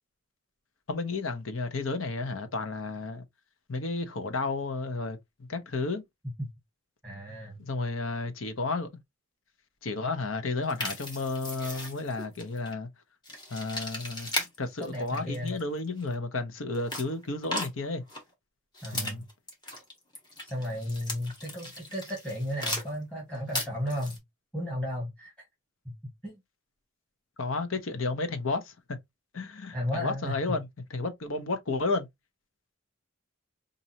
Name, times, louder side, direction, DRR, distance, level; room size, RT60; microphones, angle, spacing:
voice 1, 0.9-3.2 3.7-5.2 5.5-6.0 7.6-8.9 9.8-12.9 13.5-18.0 18.9-19.2 27.4-28.7 29.3-30.7 30.9-32.1, left 3 dB, 80° left, 0.9 m, -32 dB
voice 2, 7.0-7.6 14.8-15.6 18.8-19.2 20.4-24.2 24.5-25.3 26.2-26.4 29.7-30.6, equal, 5° left, 1.8 m, -34 dB
sound 1, 10.7-12.7 13.2-14.6 14.8-16.1 16.7-18.2 18.7-22.9 23.2-24.2, left 1 dB, 20° left, 1.4 m, -36 dB
5.2 x 2.6 x 2.8 m
head